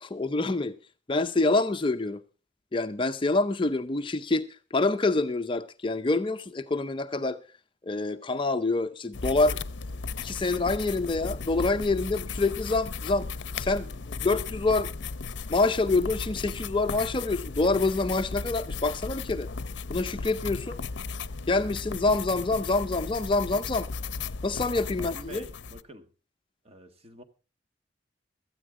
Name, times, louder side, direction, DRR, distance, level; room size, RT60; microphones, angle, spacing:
voice 1, 0.0-0.8 1.1-2.2 2.7-7.4 7.8-9.6 10.2-13.3 13.6-14.9 15.5-19.5 19.9-20.8 21.5-23.9 24.4-25.4, left 3 dB, 25° left, 0.6 m, -26 dB
sound 1, 9.1-25.8, left 4 dB, 75° left, 0.6 m, -36 dB
voice 2, 25.0-26.1 26.6-27.2, right 1 dB, 30° right, 1.5 m, -47 dB
17.0 x 13.5 x 3.7 m
head